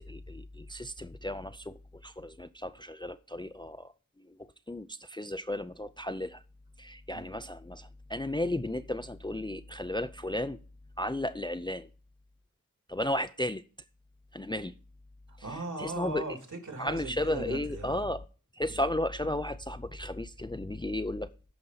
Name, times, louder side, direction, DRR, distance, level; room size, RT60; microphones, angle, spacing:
voice 1, 0.0-3.9 4.3-4.4 4.7-6.4 6.8-10.6 11.0-11.9 12.9-13.6 14.3-14.7 15.8-16.2 16.8-18.2 18.5-21.3, left 1 dB, 15° left, 0.5 m, -34 dB
voice 2, 15.3-18.2, right 2 dB, 60° right, 2.7 m, -39 dB
13.5 x 5.2 x 4.0 m
wide cardioid pair, 60°, 35 cm